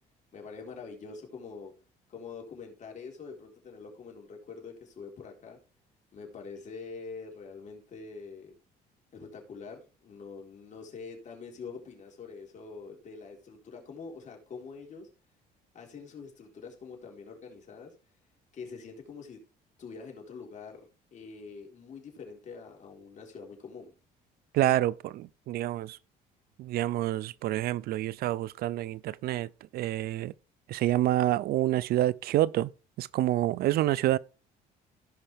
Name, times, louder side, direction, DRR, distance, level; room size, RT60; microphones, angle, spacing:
voice 1, 0.3-1.7 2.1-5.6 6.1-8.5 9.1-15.1 15.7-17.9 18.5-19.4 19.8-23.9, left 5 dB, 45° left, 4.1 m, -45 dB
voice 2, 24.5-26.0 26.6-30.3 30.7-32.7 33.0-34.2, right 14 dB, 65° right, 0.4 m, -28 dB
16.5 x 5.7 x 3.4 m
cardioid pair, 110°, 17 cm